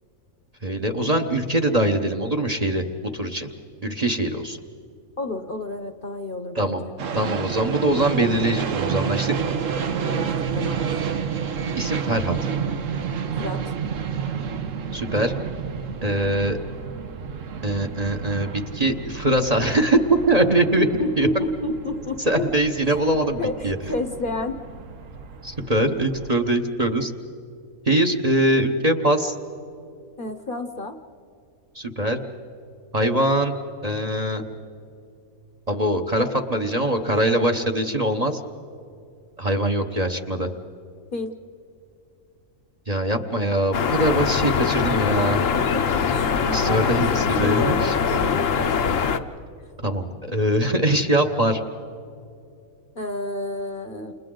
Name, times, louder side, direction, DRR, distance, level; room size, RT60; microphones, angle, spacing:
voice 1, 0.6-3.5 3.8-4.6 6.5-6.8 7.1-9.5 11.8-12.4 14.9-15.3 16.0-16.6 17.6-20.9 21.2-21.3 22.3-23.8 25.4-27.1 27.8-29.3 31.7-32.2 32.9-33.5 33.8-34.4 35.7-38.4 39.4-40.5 42.9-45.4 46.5-47.9 49.8-51.6, right 1 dB, 30° right, 6 dB, 1.0 m, -22 dB
voice 2, 5.2-6.9 10.0-11.0 13.4-13.7 20.7-22.8 23.4-24.6 30.2-31.0 41.1-41.3 45.4-48.7 52.9-54.1, left 2 dB, 40° left, 7 dB, 1.0 m, -30 dB
sound 1, 7.0-26.3, right 6 dB, 65° right, 1.3 m, -30 dB
sound 2, 43.7-49.2, left 6 dB, 65° left, 1.2 m, -22 dB
29.5 x 29.0 x 3.9 m, 2.6 s
omnidirectional pair, 1.5 m